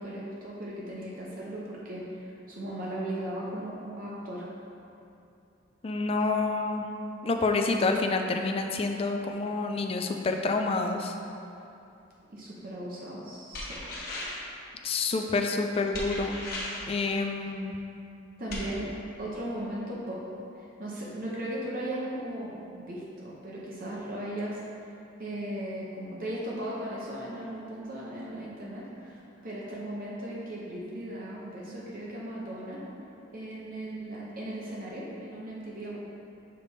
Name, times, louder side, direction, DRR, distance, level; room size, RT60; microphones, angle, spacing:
voice 1, 0.0-4.4 12.3-13.8 17.4-17.5 18.4-18.9 19.2-20.2 20.6-24.6 25.2-29.2 29.4-32.8 33.3-36.0, right 1 dB, 45° right, -5 dB, 0.8 m, -37 dB
voice 2, 5.8-6.9 7.2-11.1 14.8-16.4 16.9-17.7, left 3 dB, 30° left, 4 dB, 0.3 m, -28 dB
sound 1, 13.5-14.5 15.9-16.9 18.5-18.7, left 1 dB, 50° left, 1.1 m, -36 dB
6.6 x 3.5 x 4.1 m, 2.7 s
head